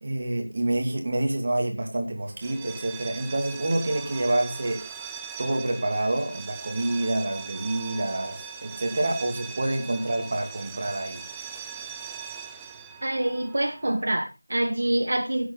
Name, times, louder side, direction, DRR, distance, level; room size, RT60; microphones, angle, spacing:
voice 1, 0.0-4.8 5.4-11.2, right 1 dB, 25° right, 3 dB, 2.5 m, -27 dB
sound 1, 2.3-14.0, right 7 dB, 5° right, 0.5 m, -40 dB
voice 2, 13.0-15.5, right 1 dB, 45° right, 4 dB, 1.9 m, -26 dB
16.5 x 7.9 x 4.1 m, 0.29 s
figure-of-eight pair, 175°, 0 cm